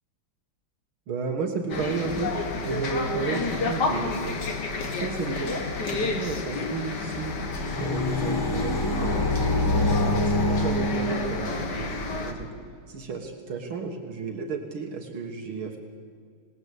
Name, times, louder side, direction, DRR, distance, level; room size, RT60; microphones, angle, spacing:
voice 1, 1.1-2.3 2.6-4.2 5.0-5.5 5.9-9.4 10.2-11.9 12.2-12.5 12.9-15.8, right 5 dB, 70° right, 4 dB, 2.4 m, -32 dB
sound 1, 1.7-12.3, left 3 dB, 50° left, 2.3 m, -31 dB
sound 2, 7.1-11.8, left 2 dB, 10° left, 1.2 m, -26 dB
27.0 x 19.0 x 8.3 m, 2.1 s
omnidirectional pair, 2.4 m